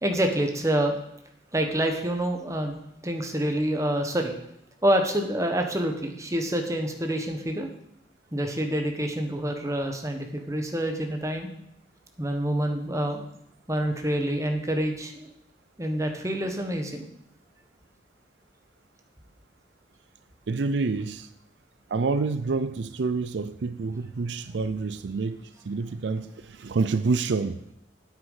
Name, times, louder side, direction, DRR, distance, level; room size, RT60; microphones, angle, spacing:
voice 1, 0.0-1.0 1.5-4.3 4.8-7.7 8.3-11.5 12.2-13.2 13.7-15.3 15.8-17.1, right 1 dB, 15° right, 1.3 m, -27 dB
voice 2, 20.5-21.3 21.9-27.6, right 4 dB, 75° right, 0.5 m, -28 dB
9.1 x 8.1 x 5.6 m
head